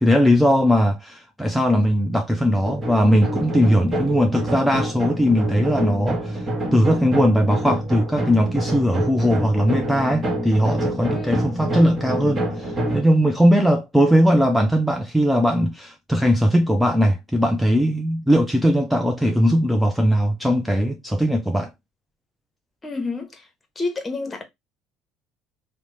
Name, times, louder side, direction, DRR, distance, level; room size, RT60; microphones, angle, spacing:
voice 1, 0.0-21.7, equal, ahead, 0.4 m, -19 dB
sound 1, 2.6-13.0, right 1 dB, 35° right, 1.2 m, -27 dB
voice 2, 22.8-23.3 23.8-24.4, left 3 dB, 25° left, 0.9 m, -28 dB
2.9 x 2.1 x 3.1 m
hypercardioid pair, 75°, 0 cm